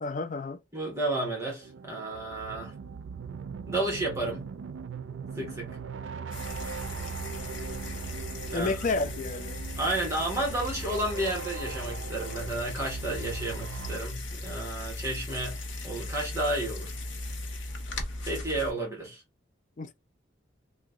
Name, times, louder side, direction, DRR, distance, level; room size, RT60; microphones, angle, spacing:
voice 1, 0.0-0.6 8.5-9.6 19.8-20.0, left 3 dB, 40° left, 0.4 m, -31 dB
voice 2, 0.7-2.7 3.7-4.4 5.3-5.7 8.5-8.7 9.8-15.6 15.8-17.0 18.2-19.2, right 1 dB, 15° right, 1.1 m, -32 dB
sound 1, 1.6-14.0, right 6 dB, 80° right, 0.4 m, -40 dB
raw alkaseltzer or steak, 6.3-18.7, left 2 dB, 80° left, 0.8 m, -38 dB
2.9 x 2.2 x 3.5 m
head